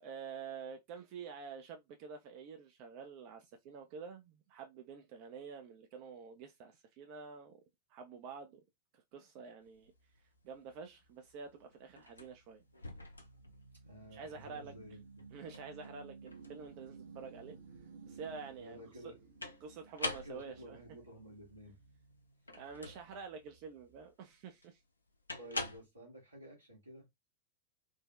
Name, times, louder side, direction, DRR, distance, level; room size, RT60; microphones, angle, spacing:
voice 1, 0.0-7.6 7.9-8.6 8.9-12.6 14.1-14.8 15.3-17.6 18.1-19.1 19.6-20.8 22.5-24.8, right 5 dB, 45° right, 0.4 m, -48 dB
sound 1, 9.6-25.8, left 2 dB, 80° left, 0.4 m, -47 dB
sound 2, 10.0-24.1, right 4 dB, 65° right, 0.7 m, -57 dB
voice 2, 13.8-15.0 18.6-19.2 20.2-21.8 25.4-27.1, equal, 85° right, 1.4 m, -52 dB
3.8 x 2.1 x 2.3 m
figure-of-eight pair, 90°, 0 cm